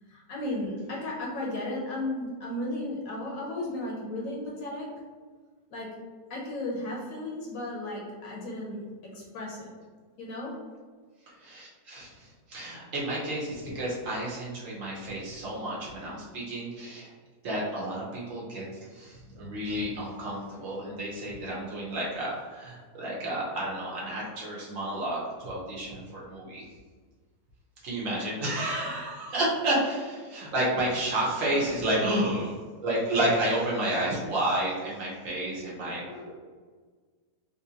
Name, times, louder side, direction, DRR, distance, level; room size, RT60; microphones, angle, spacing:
voice 1, 0.0-4.9 5.7-5.9 6.3-8.9 9.1-9.7 10.2-10.6 20.0-20.8 24.8-24.9 28.8-28.9 30.6-30.9 31.3-31.8 36.0-36.3, left 1 dB, 65° left, -3 dB, 1.0 m, -35 dB
voice 2, 11.3-17.1 17.4-18.6 18.9-26.6 27.8-32.6 32.8-36.0, right 1 dB, 55° right, -5 dB, 1.2 m, -31 dB
3.6 x 2.6 x 2.8 m, 1.5 s
omnidirectional pair, 1.7 m